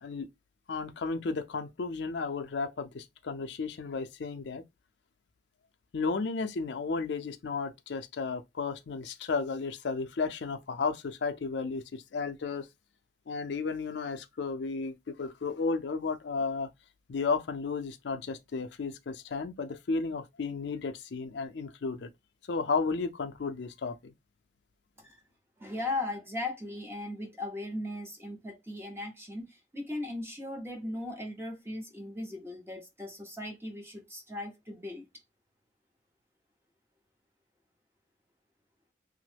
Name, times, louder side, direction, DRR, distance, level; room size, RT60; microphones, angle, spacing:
voice 1, 0.7-4.6 5.9-12.7 13.3-16.7 17.1-22.1 22.5-24.1, left 4 dB, 65° left, 0.4 m, -33 dB
voice 2, 25.6-35.1, left 2 dB, 15° right, 0.7 m, -38 dB
3.0 x 2.0 x 3.3 m
head